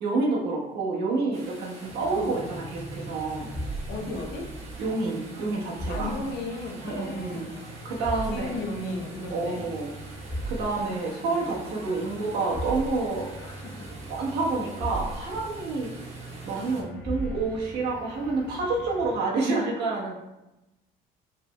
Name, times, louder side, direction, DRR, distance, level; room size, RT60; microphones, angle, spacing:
voice 1, 0.0-3.5 4.8-6.1 6.8-7.5 7.8-8.5 9.3-9.9 10.5-13.3 14.1-16.2 16.4-20.1, right 3 dB, 80° right, -4 dB, 1.2 m, -28 dB
sound 1, 1.3-16.8, right 2 dB, 40° right, 1.2 m, -46 dB
sound 2, 1.8-19.2, right 1 dB, 10° left, 0.9 m, -39 dB
voice 2, 3.9-4.5 5.9-7.8 8.2-9.6 13.4-13.9, left 2 dB, 85° left, 0 dB, 0.9 m, -35 dB
4.9 x 3.4 x 2.2 m, 0.96 s
cardioid pair, 110°, 17 cm